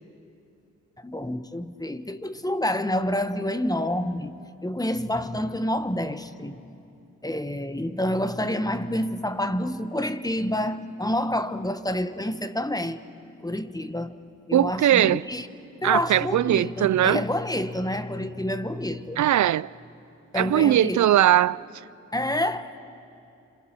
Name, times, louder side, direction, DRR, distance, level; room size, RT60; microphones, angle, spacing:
voice 1, 1.0-4.3 4.6-6.6 7.2-13.0 13.4-14.1 14.5-15.5 15.8-19.2 20.3-21.1 22.1-22.8, left 1 dB, 10° left, 1.3 m, -28 dB
voice 2, 14.5-15.2 15.8-17.2 19.2-19.7 20.3-21.7, right 12 dB, 60° right, 0.5 m, -20 dB
29.5 x 26.5 x 5.9 m
cardioid pair, 50°, 33 cm